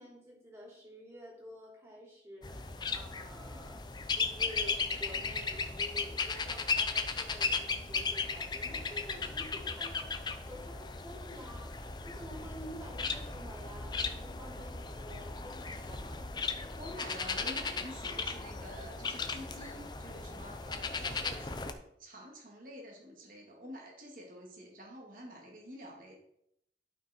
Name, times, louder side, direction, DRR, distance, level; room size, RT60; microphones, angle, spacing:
voice 1, 0.0-16.3, equal, 15° right, -3 dB, 3.0 m, -50 dB
sound 1, 2.4-21.7, left 4 dB, 25° left, 0.6 m, -36 dB
voice 2, 16.8-26.2, equal, 50° right, -1 dB, 2.4 m, -48 dB
11.5 x 5.8 x 4.5 m, 0.74 s
head